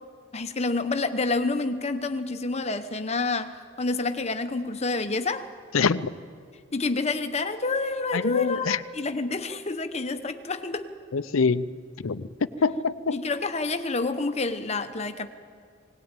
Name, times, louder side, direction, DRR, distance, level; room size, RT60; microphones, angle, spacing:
voice 1, 0.3-5.5 6.7-10.9 13.1-15.3, left 3 dB, 30° left, 9 dB, 0.9 m, -28 dB
voice 2, 5.7-6.1 8.1-8.8 11.1-11.7 12.0-12.3 12.6-13.2, left 5 dB, 75° left, 15 dB, 0.6 m, -24 dB
19.5 x 19.0 x 8.9 m, 2.1 s
head